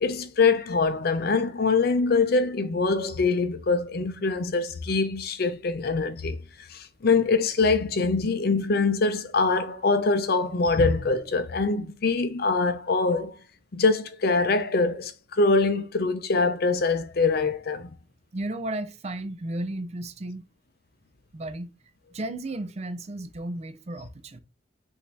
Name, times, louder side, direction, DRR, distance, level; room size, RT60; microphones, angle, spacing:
voice 1, 0.0-13.4 13.7-17.9, left 4 dB, 50° left, 0.6 m, -24 dB
voice 2, 18.3-20.4 21.3-21.7 22.1-24.4, right 1 dB, 35° right, 0.5 m, -34 dB
5.9 x 2.7 x 3.2 m
head